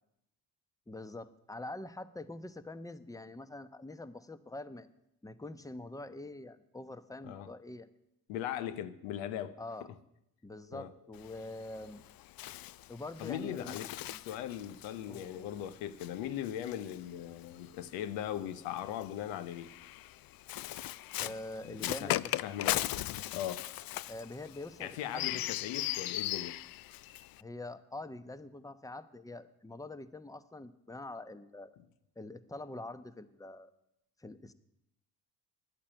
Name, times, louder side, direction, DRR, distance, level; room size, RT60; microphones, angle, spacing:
voice 1, 0.9-4.9 5.2-7.9 8.6-8.7 9.6-9.9 10.4-12.0 12.9-13.8 14.1-14.2 15.1-15.5 21.2-22.3 24.1-25.4 27.4-31.7 32.2-33.7 34.2-34.5, left 2 dB, 10° left, 1.0 m, -45 dB
voice 2, 8.3-9.6 10.7-10.9 13.2-19.7 21.6-22.9 23.3-23.7 24.8-26.6, left 11 dB, 85° left, 0.8 m, -39 dB
Bird, 11.1-17.7 18.6-27.4, left 15 dB, 55° left, 0.5 m, -39 dB
11.0 x 8.6 x 8.9 m
supercardioid pair, 55°, 44 cm